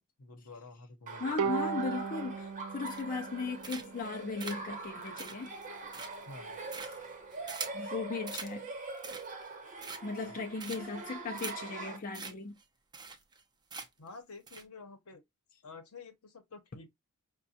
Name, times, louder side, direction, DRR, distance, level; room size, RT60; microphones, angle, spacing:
voice 1, 0.0-1.5 6.3-6.6 10.2-10.3 14.0-15.2 15.6-16.9, left 3 dB, 70° left, 0.9 m, -50 dB
Laughter, 1.1-12.0, right 3 dB, 35° right, 0.9 m, -43 dB
voice 2, 1.2-5.5 6.8-7.0 7.7-8.7 10.0-12.5, left 4 dB, 40° left, 0.5 m, -37 dB
Bowed string instrument, 1.4-4.7, right 6 dB, 65° right, 0.3 m, -37 dB
sound 1, 2.9-3.3 3.6-4.1 4.4-7.9 8.3-8.5 8.9-9.4 9.8-10.3 10.6-11.0 11.4-11.5 11.8-11.9 12.1-12.3 12.6-12.7 12.9-13.4 13.7-14.1 14.5-14.6, right 4 dB, 20° right, 0.6 m, -43 dB
5.2 x 2.2 x 2.7 m
head